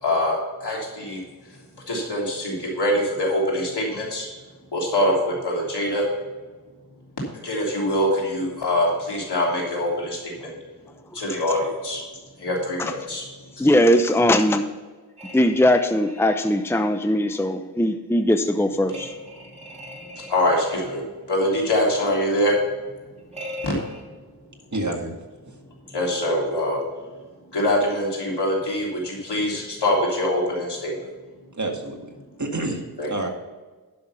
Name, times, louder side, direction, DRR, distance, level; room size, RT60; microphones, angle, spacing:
voice 1, 0.0-1.2 1.9-4.3 4.7-6.0 7.4-10.5 11.1-12.0 12.4-13.2 20.3-22.6 23.6-23.7 25.9-26.8 27.5-30.9 33.0-33.3, left 1 dB, 80° left, -3 dB, 3.3 m, -24 dB
voice 2, 13.6-14.7 15.3-19.1, left 1 dB, 5° left, 7 dB, 0.7 m, -20 dB
sound 1, 15.2-16.5 18.9-21.0 23.3-24.0, left 1 dB, 15° right, 2.3 m, -39 dB
voice 3, 24.7-25.1 25.5-25.6 31.5-32.1 32.4-33.3, right 2 dB, 45° right, 2 dB, 1.9 m, -28 dB
10.5 x 6.4 x 5.7 m, 1.3 s
wide cardioid pair, 45°, 40 cm